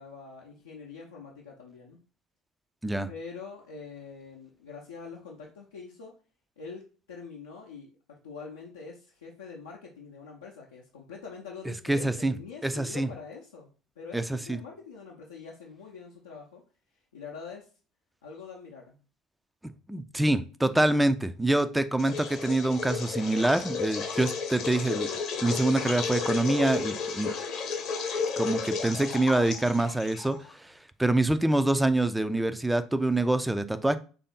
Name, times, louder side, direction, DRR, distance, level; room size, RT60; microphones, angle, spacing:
voice 1, 0.0-2.0 3.1-6.2 6.6-13.7 14.0-16.6 17.1-17.7 18.2-19.0, left 5 dB, 75° left, -3 dB, 0.6 m, -44 dB
voice 2, 11.9-12.3 12.6-13.1 14.1-14.6 19.9-25.1 25.4-27.3 28.4-30.7 31.0-34.0, right 2 dB, 5° right, 11 dB, 0.4 m, -26 dB
sound 1, 22.0-30.5, left 5 dB, 50° left, 0.9 m, -33 dB
3.4 x 2.6 x 4.0 m, 0.37 s
figure-of-eight pair, 65°, 0 cm